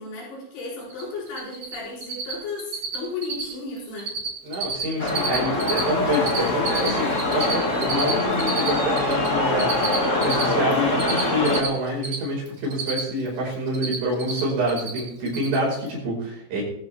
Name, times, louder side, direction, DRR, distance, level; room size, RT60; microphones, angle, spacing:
voice 1, 0.0-4.1, left 3 dB, 85° left, -6 dB, 6.8 m, -34 dB
Cricket, 0.9-1.0 1.3-1.7 2.0-2.3 2.6-3.0 3.2-3.5 3.8-4.3 4.5-5.8 6.1-9.3 9.6-12.2 12.5-13.3 13.5-14.4 14.7-15.0 15.3-15.6, right 5 dB, 35° right, 3.1 m, -29 dB
voice 2, 4.4-16.6, equal, 65° right, -4 dB, 7.3 m, -27 dB
Benfica - stadium, 5.0-11.6, left 2 dB, 45° left, 0.9 m, -24 dB
20.5 x 14.0 x 3.5 m, 0.80 s
omnidirectional pair, 5.3 m